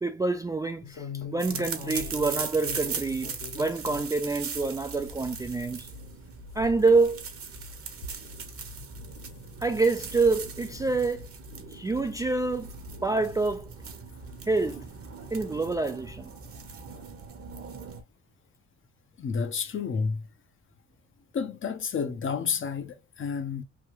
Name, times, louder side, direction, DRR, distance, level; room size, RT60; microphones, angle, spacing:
voice 1, 0.0-5.9 6.6-7.2 9.6-11.3 11.7-12.8 13.0-13.7 14.5-14.8 15.3-16.3, right 3 dB, 10° right, 0.3 m, -27 dB
sound 1, 0.8-4.2 4.6-8.7 9.1-9.5 10.0-10.4 10.6-10.9 11.6-11.7 12.0-12.1 13.2-13.3 14.1-14.9 16.1-16.3 16.6-16.7 17.0-17.1, left 5 dB, 70° left, 1.5 m, -43 dB
sound 2, 1.4-18.0, right 5 dB, 50° right, 0.9 m, -39 dB
voice 2, 19.2-20.2 21.3-23.6, left 6 dB, 40° left, 0.7 m, -30 dB
3.3 x 2.2 x 3.0 m
cardioid pair, 90°, 30 cm